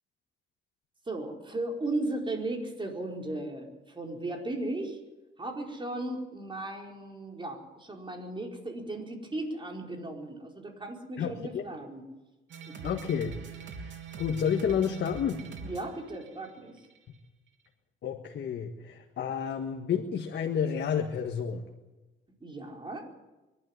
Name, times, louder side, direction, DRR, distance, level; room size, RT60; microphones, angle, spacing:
voice 1, 1.1-5.0 5.4-12.0 12.7-12.8 15.6-16.7 22.4-23.0, right 2 dB, 25° right, 1 dB, 4.8 m, -36 dB
voice 2, 11.2-11.7 12.8-13.3 14.2-15.4 18.0-21.6, left 7 dB, 60° left, 3 dB, 1.7 m, -30 dB
sound 1, 12.5-17.0, right 5 dB, 70° right, 3.2 m, -43 dB
24.0 x 12.0 x 9.7 m, 1.1 s
cardioid pair, 90°, 20 cm